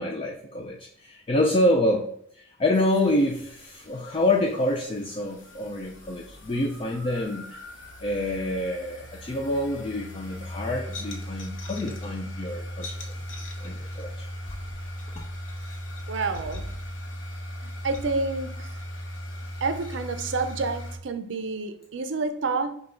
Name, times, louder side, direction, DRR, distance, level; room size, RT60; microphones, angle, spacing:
voice 1, 0.0-7.6 8.0-13.1 13.6-14.3, left 1 dB, 25° left, 0.4 m, -27 dB
sound 1, 2.7-21.0, equal, 65° left, 0.9 m, -38 dB
voice 2, 16.1-16.7 17.6-18.7 19.6-22.7, right 3 dB, 65° right, 0.5 m, -29 dB
5.5 x 2.3 x 3.7 m
head